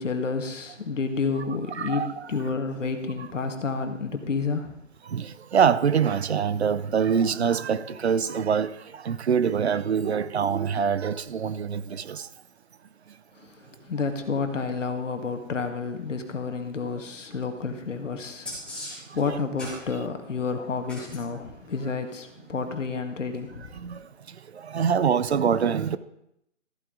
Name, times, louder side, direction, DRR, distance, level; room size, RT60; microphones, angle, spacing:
voice 1, 0.0-4.7 13.4-13.5 13.8-23.7, left 4 dB, 75° left, 1.7 m, -30 dB
voice 2, 1.8-2.3 3.2-3.3 5.1-12.3 23.7-24.0 24.5-26.0, right 7 dB, 55° right, 0.7 m, -25 dB
sound 1, 18.4-19.8 20.8-21.2 23.3-23.4, left 1 dB, ahead, 2.4 m, -37 dB
14.0 x 8.9 x 3.7 m
figure-of-eight pair, 150°, 38 cm